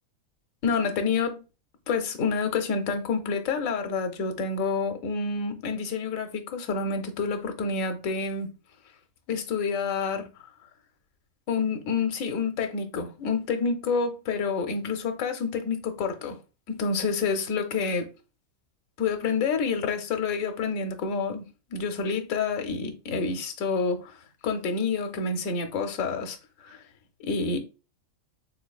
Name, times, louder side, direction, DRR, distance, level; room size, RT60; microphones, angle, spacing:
voice 1, 0.6-1.4 1.9-8.5 9.3-10.3 11.5-16.4 16.7-18.1 19.0-21.4 21.7-24.1 24.4-26.8 27.2-27.6, left 5 dB, 80° left, 1.0 m, -28 dB
3.8 x 2.9 x 2.2 m
omnidirectional pair, 1.4 m